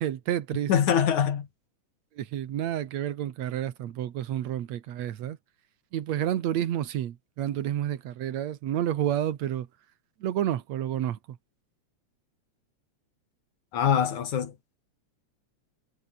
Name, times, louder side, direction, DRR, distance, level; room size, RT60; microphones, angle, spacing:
voice 1, 0.0-0.7 2.2-5.4 5.9-9.7 10.2-11.4, right 11 dB, 65° right, 2.5 m, -30 dB
voice 2, 0.7-1.5 13.7-14.5, left 8 dB, 75° left, 3.6 m, -23 dB
omnidirectional pair, 3.4 m